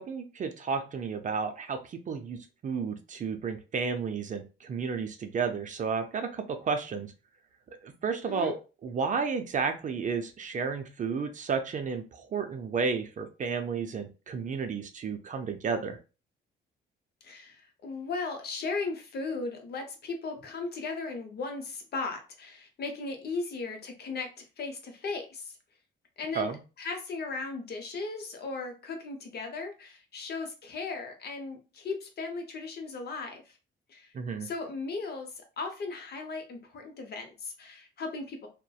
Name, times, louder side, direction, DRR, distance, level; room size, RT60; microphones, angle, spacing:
voice 1, 0.0-2.4 2.6-7.1 7.8-8.6 8.8-16.0 26.3-26.6 34.1-34.5, right 5 dB, 40° right, 7 dB, 0.4 m, -32 dB
voice 2, 8.3-8.6 17.2-25.6 26.2-33.6 33.9-34.1 34.4-38.5, left 3 dB, 55° left, 4 dB, 0.7 m, -37 dB
2.5 x 2.1 x 2.3 m, 0.32 s
cardioid pair, 90°, 20 cm